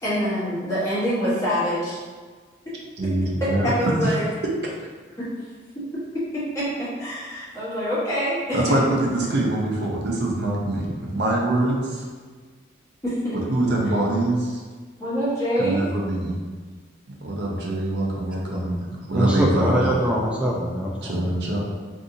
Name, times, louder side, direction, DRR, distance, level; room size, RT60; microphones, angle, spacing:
voice 1, 0.0-2.0 3.4-4.2 5.2-5.3 6.3-8.8 13.0-13.4 15.0-15.9, equal, 15° left, -12 dB, 1.2 m, -25 dB
voice 2, 3.0-3.7 4.0-4.1 8.5-12.1 13.5-14.6 15.6-16.4 17.2-20.0 21.0-21.6, right 1 dB, 60° right, -2 dB, 0.6 m, -24 dB
voice 3, 19.1-21.2, equal, 5° right, -3 dB, 0.4 m, -23 dB
2.7 x 2.5 x 3.8 m, 1.5 s
head